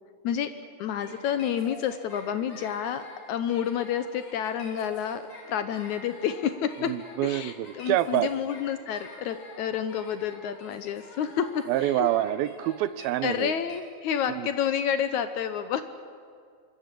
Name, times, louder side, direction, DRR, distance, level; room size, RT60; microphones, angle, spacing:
voice 1, 0.8-6.9 7.2-12.1 13.2-15.8, left 8 dB, 70° left, 10 dB, 1.8 m, -29 dB
sound 1, 1.0-13.8, left 2 dB, 50° left, 6.7 m, -47 dB
voice 2, 6.9-8.3 11.7-13.5 14.3-14.5, right 14 dB, 80° right, 15 dB, 2.5 m, -27 dB
26.5 x 23.0 x 7.6 m, 2.1 s
omnidirectional pair, 4.3 m